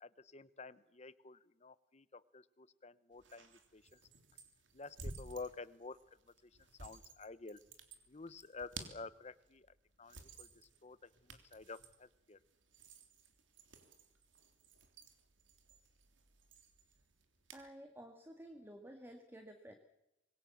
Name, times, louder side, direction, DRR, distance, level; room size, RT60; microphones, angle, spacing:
voice 1, 0.0-4.0 4.7-6.0 6.8-7.6 8.1-9.7 10.0-10.5 10.8-12.4, left 3 dB, 35° left, 16 dB, 1.0 m, -50 dB
sound 1, 3.1-17.7, right 3 dB, 90° right, 3.3 m, -55 dB
voice 2, 17.5-19.7, right 1 dB, 10° right, 5 dB, 1.9 m, -53 dB
25.5 x 21.5 x 7.3 m, 0.89 s
head